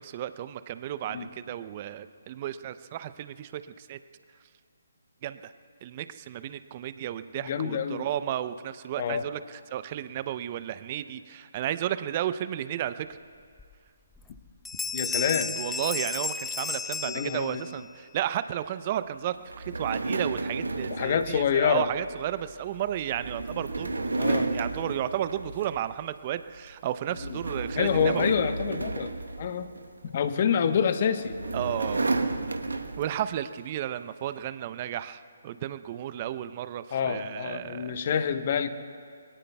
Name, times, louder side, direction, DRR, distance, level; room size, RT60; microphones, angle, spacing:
voice 1, 0.0-4.0 5.2-5.5 5.8-13.1 15.6-28.3 31.5-32.1 33.0-38.0, right 11 dB, 35° right, 12 dB, 0.7 m, -33 dB
voice 2, 7.3-8.1 9.0-9.2 14.9-15.5 17.0-17.6 20.9-21.9 24.2-24.5 27.3-27.4 27.8-29.7 30.1-31.4 36.9-38.7, left 7 dB, 45° left, 9 dB, 1.1 m, -27 dB
Bell, 13.6-13.7 14.1-14.4 14.6-17.8, left 5 dB, 5° left, 0.4 m, -33 dB
sound 1, 19.5-26.0 26.4-26.7 27.1-30.1 30.9-33.3, right 3 dB, 80° right, 1.2 m, -32 dB
28.0 x 22.5 x 2.3 m, 2.1 s
figure-of-eight pair, 145°, 0 cm